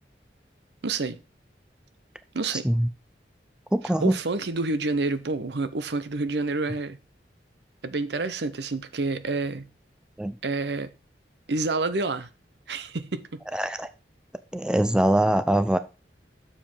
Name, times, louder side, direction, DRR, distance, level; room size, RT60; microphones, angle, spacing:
voice 1, 0.8-1.2 2.3-2.6 4.0-7.0 7.8-9.7 10.4-10.9 11.5-12.3 12.7-13.4, right 3 dB, 75° right, 0.8 m, -28 dB
voice 2, 3.7-4.2 10.2-10.3 13.5-13.9 14.5-15.8, right 1 dB, 5° right, 0.4 m, -23 dB
7.0 x 5.1 x 5.3 m
head